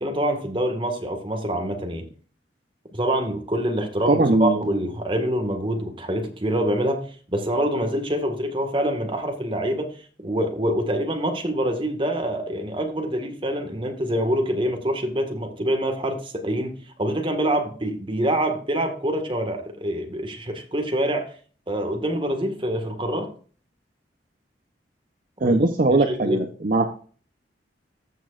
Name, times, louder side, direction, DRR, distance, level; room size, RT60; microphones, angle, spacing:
voice 1, 0.0-2.1 2.9-7.0 7.3-10.0 10.2-21.3 21.7-23.3 25.4-26.4, right 1 dB, 30° right, 4 dB, 1.7 m, -25 dB
voice 2, 4.1-4.6 25.4-27.0, right 2 dB, 50° right, 6 dB, 0.7 m, -20 dB
15.0 x 6.2 x 2.5 m, 0.42 s
head